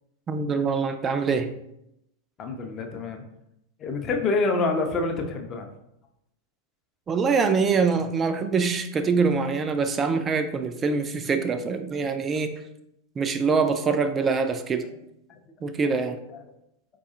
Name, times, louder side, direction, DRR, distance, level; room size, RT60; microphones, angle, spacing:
voice 1, 0.3-1.5 7.1-12.6 13.2-14.9 15.6-16.2, right 5 dB, 20° right, 9 dB, 0.3 m, -24 dB
voice 2, 2.4-3.2 3.8-5.7 13.8-13.9 16.3-16.4, left 3 dB, 25° left, 3 dB, 0.5 m, -27 dB
4.7 x 2.2 x 2.8 m, 0.80 s
figure-of-eight pair, 90°, 0 cm